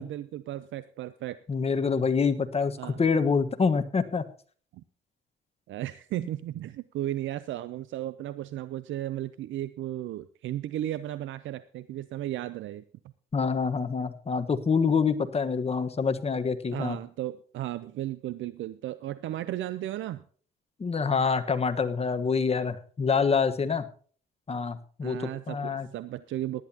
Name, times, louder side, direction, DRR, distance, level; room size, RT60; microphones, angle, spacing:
voice 1, 0.0-1.4 2.8-3.0 4.7-4.8 5.7-12.8 16.7-20.2 25.0-26.6, right 13 dB, 75° right, 15 dB, 0.6 m, -35 dB
voice 2, 1.5-4.2 13.3-17.0 20.8-23.9 24.5-25.2 25.5-25.9, left 5 dB, 30° left, 9 dB, 1.3 m, -26 dB
18.5 x 10.5 x 2.9 m, 0.43 s
cardioid pair, 90°, 20 cm